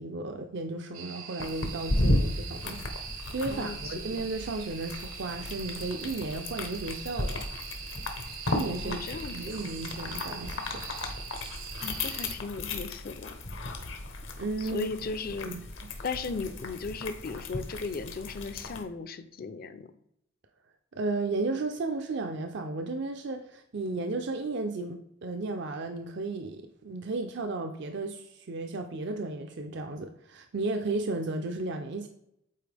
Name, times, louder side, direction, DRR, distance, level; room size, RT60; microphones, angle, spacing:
voice 1, 0.0-7.4 8.5-9.0 9.3-10.8 14.4-14.9 15.5-15.6 20.9-32.1, right 3 dB, 60° right, 6 dB, 0.5 m, -34 dB
sound 1, 0.9-12.4, right 7 dB, 75° right, 1.2 m, -43 dB
sound 2, 1.4-18.8, left 1 dB, 70° left, 1.0 m, -35 dB
voice 2, 3.5-3.9 8.8-9.4 11.8-13.4 14.6-15.5 16.0-19.9, left 4 dB, 50° left, 11 dB, 0.5 m, -36 dB
8.4 x 4.2 x 3.4 m, 0.78 s
head